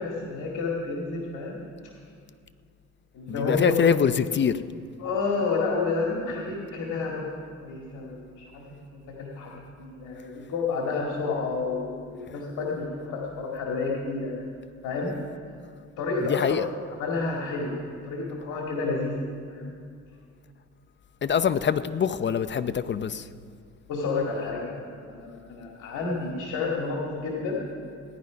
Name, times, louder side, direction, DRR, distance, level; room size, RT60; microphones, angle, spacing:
voice 1, 0.0-1.6 3.1-3.7 5.0-9.5 9.8-14.3 14.8-15.1 16.0-16.6 17.0-19.2 19.5-19.7 23.9-27.6, left 4 dB, 85° left, -2 dB, 2.3 m, -30 dB
voice 2, 3.3-4.6 16.2-16.7 21.2-23.3, left 7 dB, 40° left, 13 dB, 0.6 m, -24 dB
17.0 x 11.0 x 5.2 m, 2.2 s
cardioid pair, 90°, 30 cm